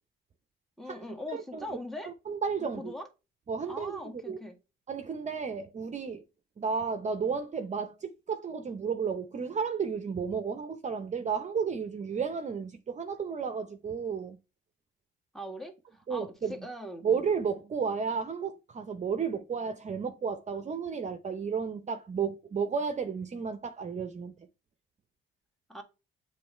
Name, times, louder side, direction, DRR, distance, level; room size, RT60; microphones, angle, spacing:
voice 1, 0.8-2.1 2.6-3.1 3.7-4.6 15.3-17.0 25.7-25.8, left 1 dB, ahead, 1.7 m, -41 dB
voice 2, 1.3-1.6 2.0-2.9 3.5-4.4 4.9-6.2 6.6-14.4 16.1-16.5 17.0-24.3, right 6 dB, 35° right, 0.7 m, -33 dB
7.6 x 3.2 x 4.4 m
cardioid pair, 90°, 20 cm